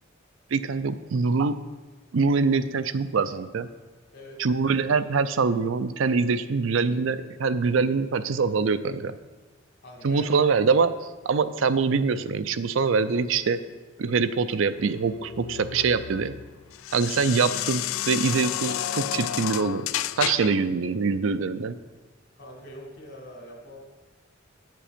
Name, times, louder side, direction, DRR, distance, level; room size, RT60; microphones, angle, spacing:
voice 1, 0.5-1.6 2.1-3.7 4.4-9.2 10.0-10.9 11.3-13.6 14.0-16.3 16.9-19.9 20.2-21.8, right 4 dB, 75° right, 12 dB, 0.5 m, -24 dB
voice 2, 9.8-10.5 22.4-23.8, equal, 55° left, 0 dB, 2.3 m, -44 dB
sound 1, 14.8-20.7, left 12 dB, 85° left, 0.3 m, -31 dB
8.8 x 7.6 x 5.1 m, 1.3 s
head